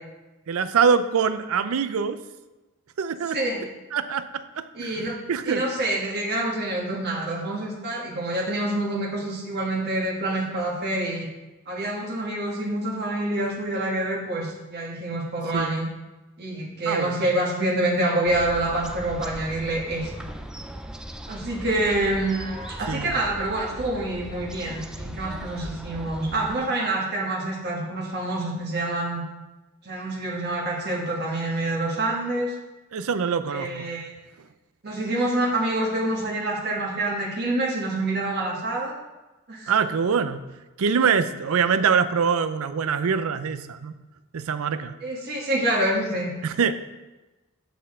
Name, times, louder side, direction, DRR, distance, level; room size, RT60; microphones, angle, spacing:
voice 1, 0.5-2.2 3.0-3.4 3.9-4.3 4.6-5.6 15.5-15.7 16.9-17.3 22.9-23.1 32.9-33.9 39.7-40.4 40.8-43.9 44.3-45.0 46.4-46.7, right 6 dB, 65° right, 12 dB, 0.5 m, -24 dB
voice 2, 3.3-3.6 4.7-5.1 5.5-11.3 11.7-15.9 16.4-20.2 21.2-29.2 29.8-32.5 33.5-34.1 34.8-39.0 39.5-39.7 45.0-46.3, right 1 dB, 50° right, -2 dB, 1.3 m, -27 dB
sound 1, 18.3-26.6, equal, 5° right, 0.3 m, -38 dB
8.0 x 6.5 x 3.6 m, 1.1 s
head